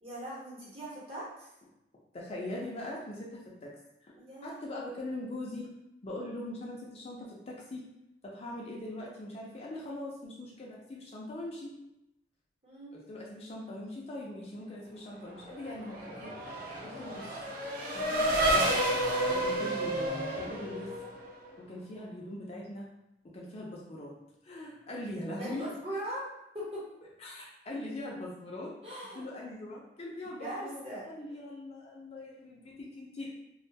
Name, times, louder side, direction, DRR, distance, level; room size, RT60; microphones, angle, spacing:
voice 1, 0.0-1.5 4.2-4.8 12.6-13.0 25.4-26.3 26.5-26.9 28.8-29.3 30.4-31.1, right 1 dB, 35° right, -7 dB, 0.9 m, -40 dB
voice 2, 2.1-4.1 4.4-5.7 6.0-7.9 8.2-11.8 12.9-16.5 16.8-17.4 17.9-18.8 19.3-20.9 21.6-22.9 23.3-24.2 24.4-25.7 27.2-28.7 29.1-33.3, left 1 dB, 35° left, -3 dB, 0.4 m, -41 dB
Race car auto racing / Accelerating revving vroom, 15.4-21.5, right 1 dB, 55° right, 0.5 m, -31 dB
2.3 x 2.2 x 2.7 m, 0.85 s
head